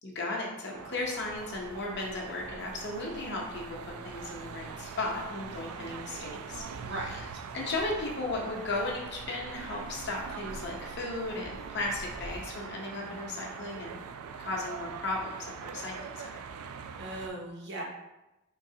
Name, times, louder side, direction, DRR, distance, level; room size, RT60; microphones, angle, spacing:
voice 1, 0.0-6.6 7.0-7.2 7.5-14.0 14.4-16.4, left 2 dB, 50° left, -1 dB, 0.7 m, -35 dB
sound 1, 0.7-17.3, right 6 dB, 90° right, 0.3 m, -43 dB
sound 2, 1.2-12.5, equal, 5° right, 0.6 m, -51 dB
voice 2, 6.8-7.4 17.0-17.8, right 1 dB, 50° right, -1 dB, 0.7 m, -39 dB
3.9 x 2.8 x 2.7 m, 0.98 s
head